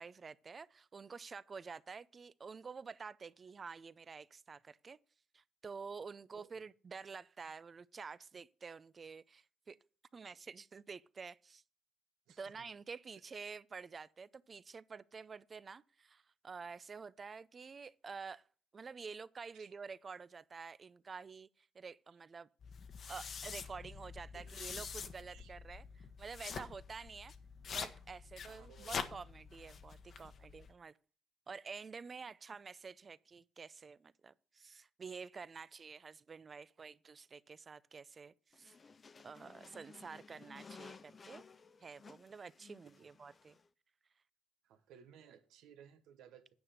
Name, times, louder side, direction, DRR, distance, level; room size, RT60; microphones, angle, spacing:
voice 1, 0.0-5.0 5.3-9.8 10.1-11.6 12.4-18.5 18.7-22.5 23.1-27.3 27.7-30.9 31.5-38.8 39.2-41.4 41.8-43.6, right 5 dB, 35° right, 0.5 m, -49 dB
voice 2, 6.3-6.6 12.3-12.6 19.5-19.7 24.3-24.5 25.3-25.5 28.4-29.0 43.0-43.1 44.6-46.5, right 8 dB, 90° right, 1.2 m, -59 dB
sound 1, 22.6-30.7, left 6 dB, 50° left, 1.0 m, -46 dB
sound 2, 38.5-43.7, left 5 dB, 35° left, 0.5 m, -57 dB
9.5 x 5.7 x 6.7 m
cardioid pair, 105°, 0 cm